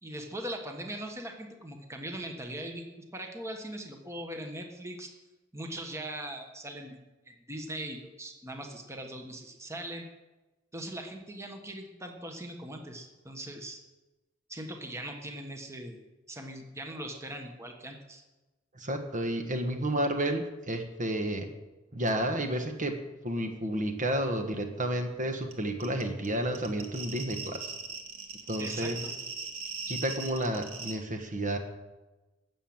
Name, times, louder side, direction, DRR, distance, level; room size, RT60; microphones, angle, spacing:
voice 1, 0.0-2.8 3.1-5.1 5.5-7.1 7.5-10.0 10.7-13.8 14.5-16.0 16.3-18.2 28.6-29.1, right 1 dB, 15° right, 3 dB, 1.4 m, -40 dB
voice 2, 18.7-21.5 21.9-23.0 23.2-27.7 28.5-29.0 29.9-31.6, right 1 dB, 40° right, 4 dB, 1.4 m, -31 dB
sound 1, 25.5-25.6 25.8-30.9, right 5 dB, 70° right, 2.1 m, -39 dB
14.0 x 7.3 x 8.8 m, 1.1 s
head